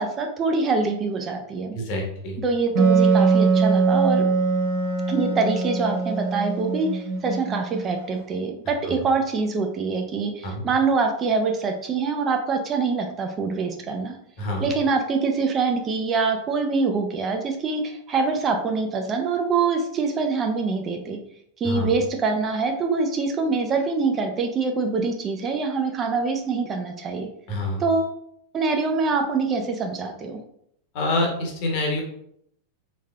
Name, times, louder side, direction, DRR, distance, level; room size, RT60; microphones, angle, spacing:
voice 1, 0.0-1.7 2.4-4.3 5.1-14.2 14.6-21.2 21.6-27.3 27.8-28.2 28.5-30.4, right 4 dB, 25° right, 3 dB, 0.4 m, -24 dB
voice 2, 1.7-2.4 8.8-8.9 10.4-10.6 14.4-14.7 21.6-21.9 27.5-27.8 30.9-32.0, left 2 dB, 45° left, 0 dB, 1.0 m, -26 dB
Wind instrument woodwind instrument, 2.7-8.1, right 4 dB, 50° right, 0.9 m, -22 dB
3.6 x 3.2 x 2.2 m, 0.71 s
figure-of-eight pair, 90°, 0 cm